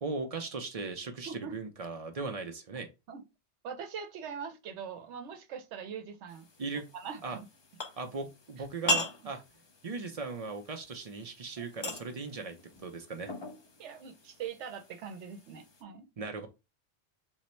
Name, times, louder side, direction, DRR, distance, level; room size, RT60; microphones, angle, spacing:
voice 1, 0.0-2.9 6.6-6.9 7.2-7.4 8.0-9.4 9.8-13.3 16.2-16.5, right 4 dB, 50° right, 0.4 m, -38 dB
voice 2, 3.6-6.5 6.9-7.5 13.8-16.1, right 7 dB, 80° right, 0.9 m, -42 dB
sound 1, 6.3-15.8, left 2 dB, 35° left, 0.4 m, -40 dB
3.7 x 2.0 x 4.2 m
omnidirectional pair, 1.2 m